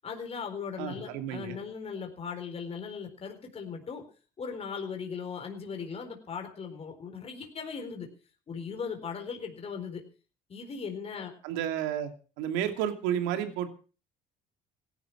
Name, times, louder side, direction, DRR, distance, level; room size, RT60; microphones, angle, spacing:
voice 1, 0.0-4.0 4.4-8.1 8.5-10.0 10.5-11.3, left 6 dB, 35° left, 4 dB, 4.2 m, -38 dB
voice 2, 0.8-1.6 11.4-12.1 12.4-13.7, right 10 dB, 90° right, 7 dB, 2.7 m, -31 dB
17.5 x 12.0 x 6.0 m, 0.37 s
cardioid pair, 120°, 19 cm